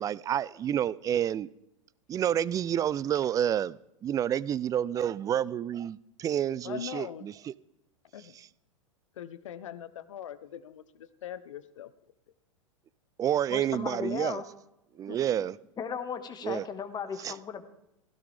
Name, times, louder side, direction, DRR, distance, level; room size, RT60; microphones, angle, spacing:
voice 1, 0.0-1.5 2.1-7.5 8.3-8.5 13.2-14.4 15.0-15.6 16.4-16.6 17.2-17.3, right 10 dB, 20° right, 22 dB, 0.4 m, -29 dB
voice 2, 6.6-7.3 8.1-8.4 9.2-11.9, left 10 dB, 70° left, 15 dB, 1.0 m, -41 dB
voice 3, 13.5-14.4 15.1-15.5 15.8-17.7, left 6 dB, 25° left, 8 dB, 1.7 m, -36 dB
16.5 x 15.5 x 3.5 m, 0.84 s
figure-of-eight pair, 95°, 17 cm